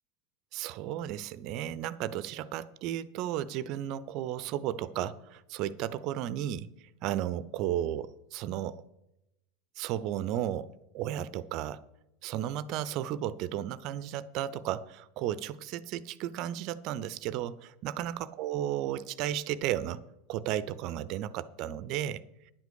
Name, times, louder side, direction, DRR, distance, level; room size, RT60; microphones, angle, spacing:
voice 1, 0.5-6.7 7.0-8.8 9.8-11.8 12.2-20.0 20.3-22.2, right 11 dB, 50° right, 0.6 m, -34 dB
10.5 x 8.2 x 6.6 m
figure-of-eight pair, 80°, 0 cm